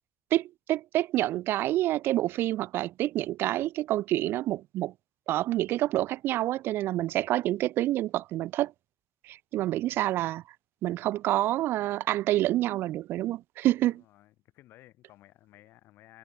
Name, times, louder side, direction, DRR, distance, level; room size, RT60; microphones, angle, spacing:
voice 1, 0.3-4.9 5.3-8.7 9.3-10.4 10.8-14.0, right 15 dB, 80° right, 0.4 m, -28 dB
voice 2, 13.7-16.2, left 16 dB, 80° left, 8.0 m, -56 dB
supercardioid pair, 65°, 4 cm